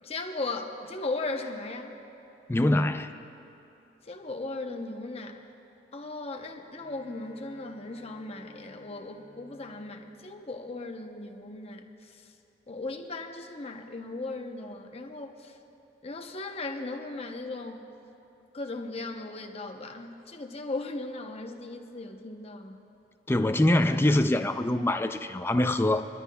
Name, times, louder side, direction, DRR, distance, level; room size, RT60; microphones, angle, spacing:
voice 1, 0.0-2.0 4.0-5.5 5.9-12.2 12.7-15.6 16.0-17.9 18.5-22.8, left 2 dB, 35° left, 4 dB, 0.8 m, -37 dB
voice 2, 2.5-3.1 23.3-26.1, left 1 dB, 15° left, 8 dB, 0.4 m, -24 dB
Bowed string instrument, 6.7-11.0, equal, 50° right, 3.3 m, -57 dB
22.5 x 13.5 x 2.3 m, 2.8 s
head